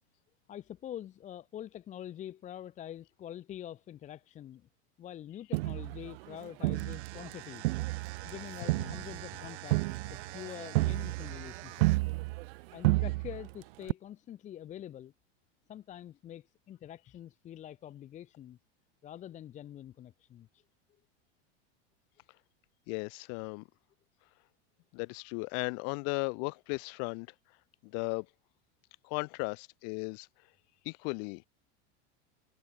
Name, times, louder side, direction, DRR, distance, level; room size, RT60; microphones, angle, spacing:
voice 1, 0.5-4.7 5.0-7.7 8.2-11.9 12.7-15.1 15.7-18.6 19.0-20.6, left 11 dB, 20° left, 0.9 m, -45 dB
Crowd, 5.5-7.3 7.6-12.6 12.8-13.5 13.9-14.0, right 23 dB, 60° right, 0.9 m, -31 dB
sound 1, 6.7-12.2, right 15 dB, 80° right, 3.3 m, -46 dB
voice 2, 22.9-23.7 24.9-27.3 27.8-28.3 29.0-30.3 30.8-31.5, left 40 dB or more, 50° left, 2.6 m, -36 dB
supercardioid pair, 150°, 33 cm